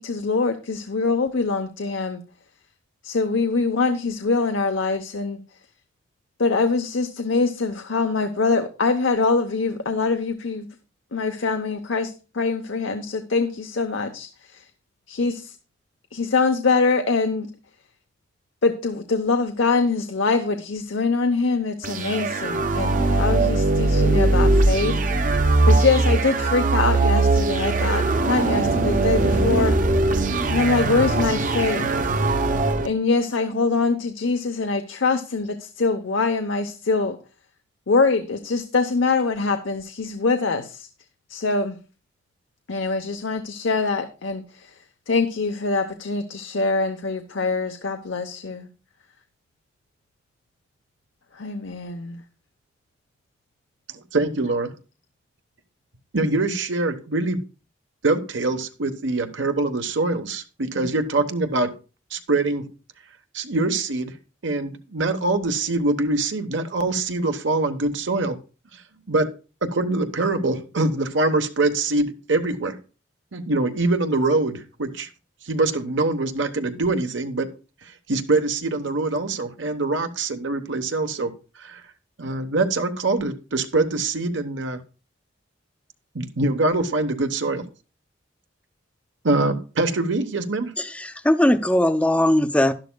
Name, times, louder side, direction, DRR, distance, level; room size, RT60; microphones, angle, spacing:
voice 1, 0.0-2.2 3.0-5.4 6.4-10.7 11.1-14.7 15.1-15.6 16.1-17.5 18.6-25.0 25.6-30.1 30.5-31.9 32.8-37.2 37.9-40.9 41.3-41.8 42.7-48.7 51.3-52.2, left 4 dB, 90° left, 0.8 m, -24 dB
sound 1, 21.8-32.9, right 2 dB, 45° right, 0.7 m, -20 dB
voice 2, 54.1-54.7 56.1-57.4 58.0-61.7 62.1-62.7 63.3-64.2 64.4-68.4 68.7-68.8 69.1-69.3 69.6-72.8 73.3-75.1 75.4-77.5 77.8-81.3 81.6-81.8 82.2-84.8 86.1-87.7 89.2-90.7, right 2 dB, 75° right, 1.0 m, -24 dB
voice 3, 90.8-92.7, left 1 dB, 5° left, 0.5 m, -19 dB
11.5 x 11.5 x 2.2 m
head